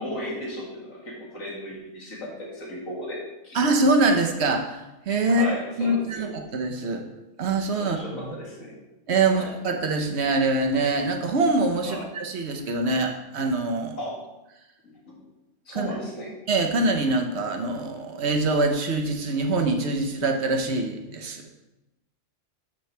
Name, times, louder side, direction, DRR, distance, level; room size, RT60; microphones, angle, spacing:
voice 1, 0.0-3.2 3.4-3.6 5.3-6.3 7.8-8.7 9.3-9.5 11.8-12.0 14.0-14.2 14.8-15.2 15.7-16.3, left 1 dB, 90° left, -4 dB, 2.5 m, -35 dB
voice 2, 3.5-4.8 5.1-5.5 5.8-7.0 7.4-8.3 9.1-14.0 15.7-15.9 16.5-21.6, right 2 dB, 55° right, 4 dB, 1.2 m, -24 dB
9.3 x 6.9 x 3.3 m, 0.97 s
omnidirectional pair, 1.4 m